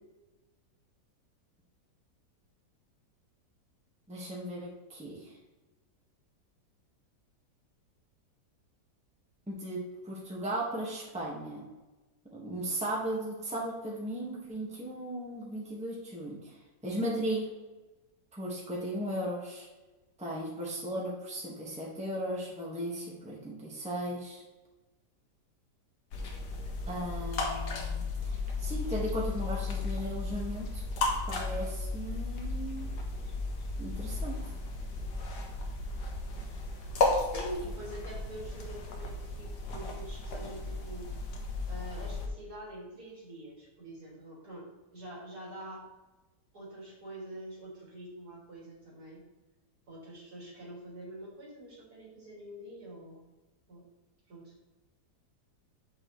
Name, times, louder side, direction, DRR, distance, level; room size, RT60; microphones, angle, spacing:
voice 1, 4.1-5.3 9.5-11.6 12.3-16.6 16.8-17.5 18.3-19.7 20.2-24.4 26.9-30.8 31.3-32.9 33.8-34.4, right 1 dB, 5° right, -4 dB, 1.6 m, -36 dB
sound 1, 26.1-42.3, left 3 dB, 70° left, 1.7 m, -34 dB
voice 2, 37.3-41.2 41.7-45.9 46.5-49.2 49.9-53.2 53.7-53.8 54.3-54.5, right 1 dB, 60° right, -4 dB, 3.1 m, -45 dB
8.3 x 6.2 x 3.2 m, 1.1 s
omnidirectional pair, 1.9 m